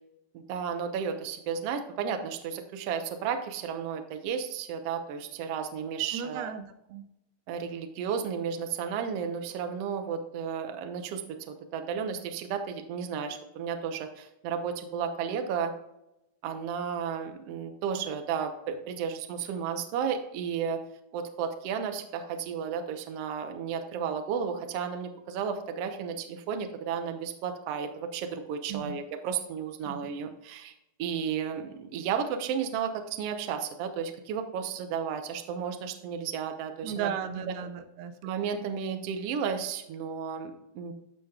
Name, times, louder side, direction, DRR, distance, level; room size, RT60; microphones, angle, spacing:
voice 1, 0.3-6.5 7.5-15.7 16.4-20.8 21.1-30.7 31.0-37.1 37.5-37.6 38.2-40.9, right 7 dB, 70° right, 6 dB, 1.6 m, -33 dB
voice 2, 6.1-7.0 28.7-29.0 29.9-30.0 36.8-38.1 38.7-38.8, right 8 dB, 85° right, 8 dB, 2.4 m, -36 dB
14.5 x 5.1 x 2.4 m, 0.87 s
omnidirectional pair, 3.8 m